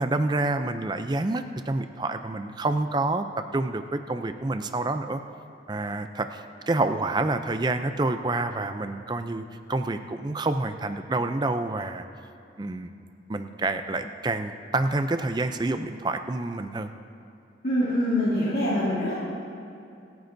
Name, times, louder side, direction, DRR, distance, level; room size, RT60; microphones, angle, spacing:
voice 1, 0.0-5.2 5.7-9.4 9.7-12.1 12.6-12.9 13.3-16.9, right 2 dB, 25° right, 8 dB, 0.4 m, -28 dB
voice 2, 17.6-19.1, left 1 dB, 55° left, -11 dB, 2.7 m, -24 dB
27.5 x 9.5 x 2.7 m, 2.6 s
head